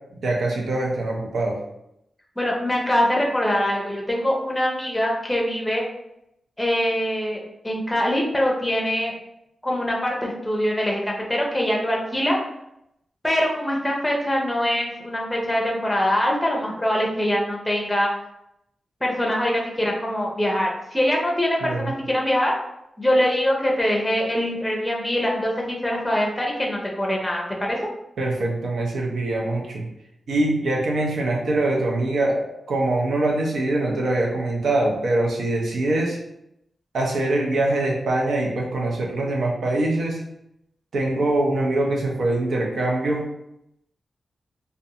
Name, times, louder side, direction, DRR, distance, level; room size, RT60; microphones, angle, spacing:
voice 1, 0.2-1.6 21.6-22.0 28.2-29.8 30.3-32.4 32.7-36.2 36.9-40.2 40.9-43.2, right 2 dB, 85° right, -1 dB, 0.6 m, -23 dB
voice 2, 2.4-5.9 6.6-9.1 9.6-12.4 13.2-18.1 19.0-22.5 23.0-27.8, equal, 10° left, -2 dB, 0.5 m, -23 dB
2.4 x 2.1 x 2.8 m, 0.81 s
wide cardioid pair, 135°, 0 cm